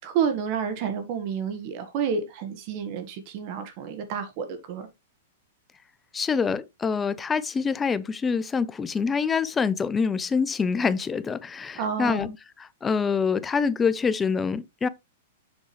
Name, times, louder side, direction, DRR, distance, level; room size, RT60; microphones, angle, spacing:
voice 1, 0.0-4.9 11.8-12.3, right 7 dB, 45° right, 1.6 m, -29 dB
voice 2, 6.1-14.9, left 5 dB, 15° left, 0.5 m, -26 dB
7.3 x 6.1 x 3.2 m
hypercardioid pair, 135°, 0 cm